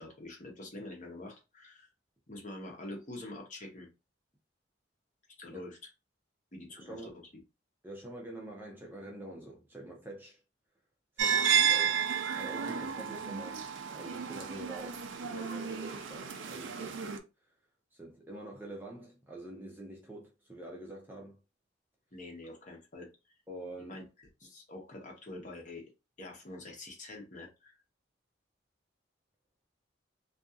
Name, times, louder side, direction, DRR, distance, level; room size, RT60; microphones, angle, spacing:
voice 1, 0.0-1.9 2.3-3.9 5.4-5.8 6.5-7.1 22.1-23.1 23.9-25.9 26.2-27.8, left 2 dB, 40° left, 0.9 m, -46 dB
voice 2, 6.8-7.2 7.8-10.4 11.2-13.6 13.9-17.2 17.9-21.4 23.5-24.0, right 1 dB, 10° right, 0.5 m, -46 dB
sound 1, 11.2-17.2, right 7 dB, 85° right, 0.5 m, -32 dB
2.7 x 2.5 x 2.4 m
head